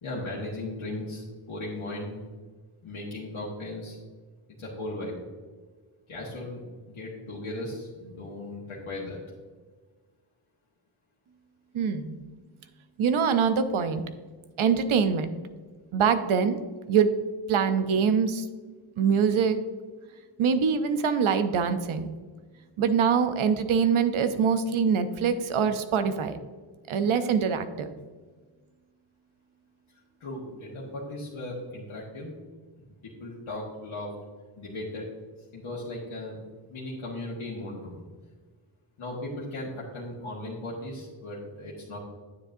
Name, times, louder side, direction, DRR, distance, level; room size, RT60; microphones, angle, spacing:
voice 1, 0.0-2.2 2.8-4.0 4.6-5.2 6.1-6.6 6.9-9.2 30.2-32.3 33.0-34.1 34.6-35.1 35.5-36.4 36.7-38.0 39.0-42.0, left 1 dB, 75° left, -5 dB, 1.6 m, -37 dB
voice 2, 11.7-12.2 13.0-14.0 14.6-15.3 15.9-16.6 16.9-17.1 17.5-18.4 19.0-19.6 20.4-22.1 22.8-26.3 26.9-27.9, right 6 dB, 80° right, 10 dB, 0.7 m, -24 dB
9.5 x 7.4 x 2.6 m, 1.4 s
wide cardioid pair, 110°, 48 cm